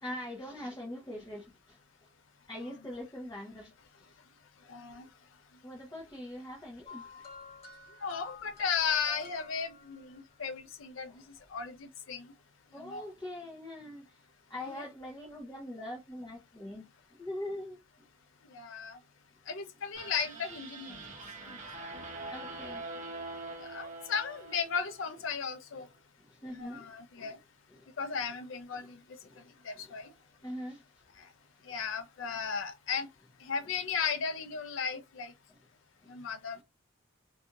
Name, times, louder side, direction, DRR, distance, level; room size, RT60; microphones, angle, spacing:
voice 1, 0.0-1.8 2.5-4.1 5.6-7.0 11.1-11.2 12.7-14.2 14.5-17.8 22.3-22.8 26.3-27.4 27.7-27.9 28.7-28.9 29.2-29.5 29.7-29.9 30.4-30.8 35.5-35.6 36.0-36.2 36.6-36.7, left 1 dB, 15° left, 0.6 m, -43 dB
voice 2, 4.7-5.1 8.0-12.3 12.8-13.1 14.6-14.8 18.5-19.0 19.5-21.0 21.5-21.9 23.6-25.9 26.5-27.4 28.0-29.0 29.6-30.1 31.2-31.3 31.6-33.1 33.4-35.3 36.1-36.6, left 6 dB, 80° left, 0.5 m, -36 dB
sound 1, 6.9-10.4 11.5-11.6, left 5 dB, 30° left, 1.3 m, -50 dB
sound 2, 19.9-25.2, right 2 dB, 35° right, 0.7 m, -44 dB
2.5 x 2.3 x 2.8 m
head